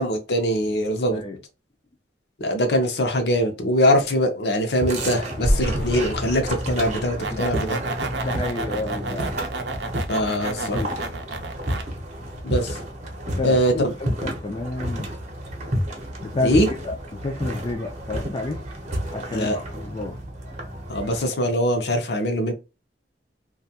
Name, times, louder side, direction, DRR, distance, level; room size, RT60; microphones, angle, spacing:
voice 1, 0.0-1.2 2.4-7.8 10.1-10.8 12.4-12.8 13.4-13.9 16.4-16.7 19.3-19.6 20.9-22.5, equal, 65° left, 0.7 m, -22 dB
sound 1, 4.8-21.2, equal, 40° right, 0.8 m, -31 dB
sound 2, 5.4-8.4, equal, 85° left, 1.0 m, -28 dB
sound 3, 6.9-11.8, right 3 dB, 70° right, 0.5 m, -32 dB
voice 2, 8.2-9.3 10.4-10.9 13.2-15.1 16.2-16.5 16.8-18.6 19.1-20.2, left 2 dB, 30° left, 0.4 m, -30 dB
2.7 x 2.3 x 2.8 m
head